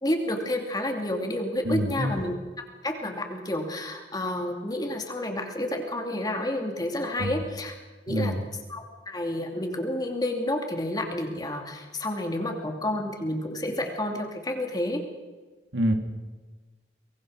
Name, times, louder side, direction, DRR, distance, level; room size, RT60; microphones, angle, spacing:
voice 1, 0.0-2.3 2.8-7.7 8.1-8.3 8.7-15.0, left 1 dB, 20° left, 3 dB, 2.6 m, -30 dB
voice 2, 1.6-2.2 7.2-7.4 8.1-8.4 15.7-15.9, equal, 80° right, 5 dB, 2.9 m, -26 dB
24.0 x 21.0 x 6.5 m, 1.3 s
head